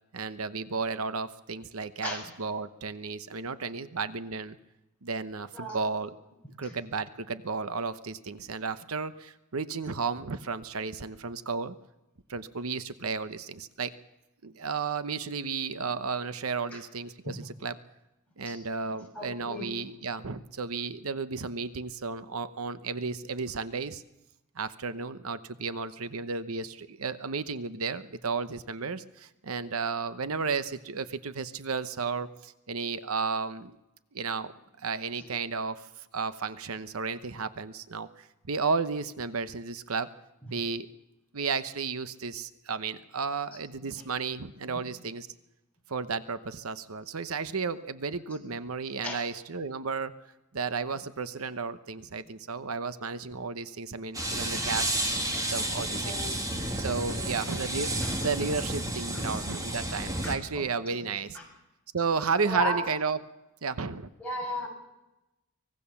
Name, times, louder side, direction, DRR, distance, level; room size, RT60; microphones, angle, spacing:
voice 1, 0.1-4.6 5.0-6.2 6.6-11.8 12.3-13.9 14.4-17.8 18.4-24.0 24.6-33.8 34.1-34.5 34.8-35.9 36.1-40.1 40.5-40.9 41.3-45.3 45.9-50.2 50.5-55.0 55.5-56.2 56.8-61.4 61.9-63.2 63.6-64.1, right 4 dB, 80° right, 12 dB, 0.9 m, -33 dB
voice 2, 18.8-19.8 40.4-40.5 43.8-44.0 44.7-44.9 49.0-49.2 55.3-55.4 56.0-56.3 57.1-57.6 58.0-58.2 59.1-59.3 59.8-59.9 60.2-61.1 61.3-61.5 62.4-62.8 64.2-64.7, left 1 dB, 5° left, -2 dB, 6.4 m, -36 dB
sound 1, 54.1-60.4, right 1 dB, 15° right, 2.4 m, -31 dB
24.5 x 19.0 x 7.1 m, 0.96 s
head